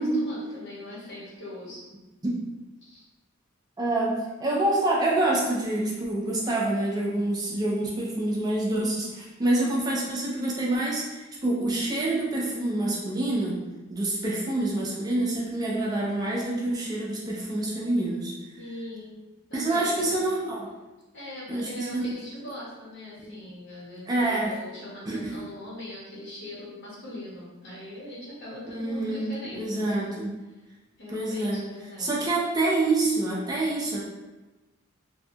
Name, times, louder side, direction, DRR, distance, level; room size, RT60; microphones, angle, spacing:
voice 1, 0.0-1.8 2.8-3.0 18.6-19.2 19.5-20.2 21.1-30.0 30.5-30.6 31.0-32.1, left 1 dB, 55° left, -6 dB, 1.0 m, -41 dB
voice 2, 3.8-13.6 13.9-18.3 19.5-20.7 21.5-22.2 23.2-23.3 24.1-24.5 25.1-25.3 28.7-30.3 31.1-31.6 32.0-34.1, right 2 dB, 20° right, -4 dB, 0.4 m, -27 dB
2.7 x 2.2 x 2.6 m, 1.1 s
head